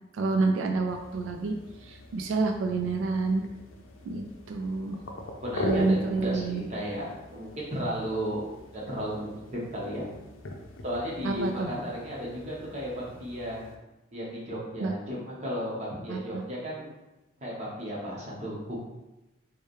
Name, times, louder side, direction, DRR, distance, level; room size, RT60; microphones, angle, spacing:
voice 1, 0.2-1.5 1.9-3.4 4.1-5.0 5.6-6.6 11.2-11.7 14.8-14.9 16.1-16.4, right 3 dB, 85° right, 4 dB, 0.3 m, -28 dB
sound 1, 0.9-13.7, left 1 dB, 90° left, 0.5 m, -41 dB
voice 2, 5.4-8.4 8.7-10.1 10.8-13.6 14.1-16.9 17.4-18.8, equal, 35° right, -6 dB, 1.0 m, -34 dB
4.6 x 2.2 x 3.0 m, 1.0 s
head